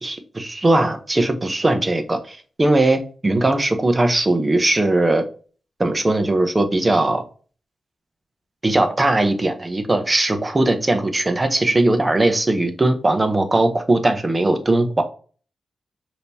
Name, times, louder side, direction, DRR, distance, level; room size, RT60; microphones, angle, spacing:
voice 1, 0.0-5.2 5.8-7.2 8.6-15.0, right 2 dB, 30° right, 1.0 m, -19 dB
5.1 x 3.0 x 2.7 m
cardioid pair, 55°, 0 cm